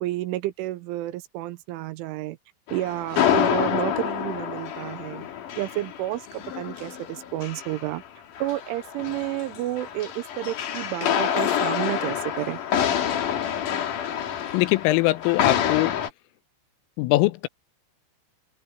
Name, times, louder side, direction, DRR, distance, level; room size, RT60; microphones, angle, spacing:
voice 1, 0.0-2.4 2.7-5.2 5.6-8.0 8.4-12.6, right 16 dB, 85° right, 3.1 m, -30 dB
sound 1, 2.7-8.1 8.4-16.1, left 9 dB, 55° left, 2.6 m, -27 dB
voice 2, 14.5-16.0 17.0-17.5, left 19 dB, 85° left, 3.4 m, -21 dB
open air
omnidirectional pair, 5.8 m